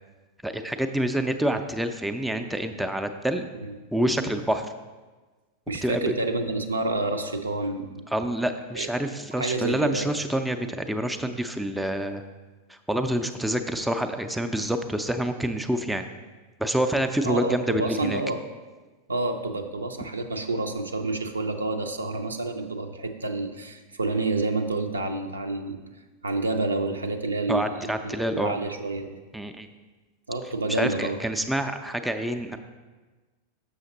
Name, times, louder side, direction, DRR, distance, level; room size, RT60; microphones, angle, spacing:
voice 1, 0.4-3.4 3.9-4.7 5.8-6.0 8.1-12.3 12.7-16.0 16.6-18.2 27.5-28.5 29.3-29.7 30.7-32.6, right 1 dB, 5° right, 6 dB, 0.4 m, -27 dB
voice 2, 5.7-8.0 8.7-8.9 9.3-10.1 17.3-18.4 19.1-25.8 26.2-29.2 30.3-31.2, right 2 dB, 75° right, 6 dB, 0.6 m, -29 dB
7.0 x 6.3 x 3.9 m, 1.3 s
figure-of-eight pair, 90°, 0 cm